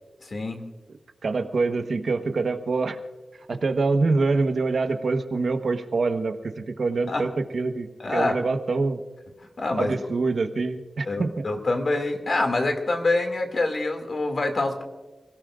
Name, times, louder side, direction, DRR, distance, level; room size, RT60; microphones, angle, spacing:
voice 1, 0.2-0.6 7.1-7.2 8.0-8.4 9.6-9.9 11.1-14.8, left 2 dB, 60° left, 4 dB, 2.3 m, -25 dB
voice 2, 1.2-3.0 3.5-9.0 9.8-11.3, right 3 dB, 75° right, 7 dB, 1.1 m, -25 dB
29.5 x 17.0 x 2.5 m, 1.3 s
wide cardioid pair, 105°, 0 cm